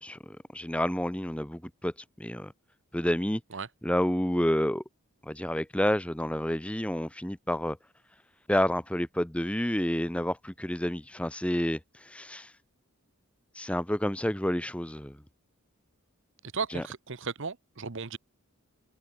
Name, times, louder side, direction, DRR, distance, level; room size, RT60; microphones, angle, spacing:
voice 1, 0.0-1.9 2.2-2.5 2.9-3.4 3.8-4.8 5.2-7.8 8.5-12.5 13.5-15.2 16.7-16.9, left 1 dB, 5° left, 0.8 m, -29 dB
voice 2, 16.5-18.2, right 5 dB, 55° right, 1.0 m, -35 dB
open air
head